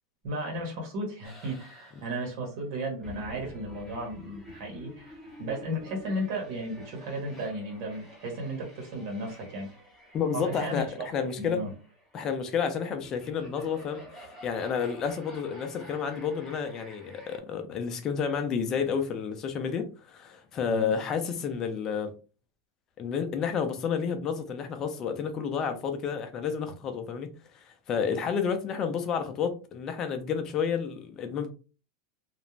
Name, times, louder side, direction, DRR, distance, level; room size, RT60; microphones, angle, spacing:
voice 1, 0.2-9.7 10.3-11.1 11.4-11.7 20.7-20.9, right 1 dB, 50° right, 1.1 m, -35 dB
sound 1, 1.2-17.4, left 1 dB, ahead, 0.8 m, -50 dB
voice 2, 10.1-11.6 12.1-22.1 23.0-27.3 27.9-31.5, left 6 dB, 25° left, 0.4 m, -30 dB
2.4 x 2.0 x 3.1 m
supercardioid pair, 165°, 2 cm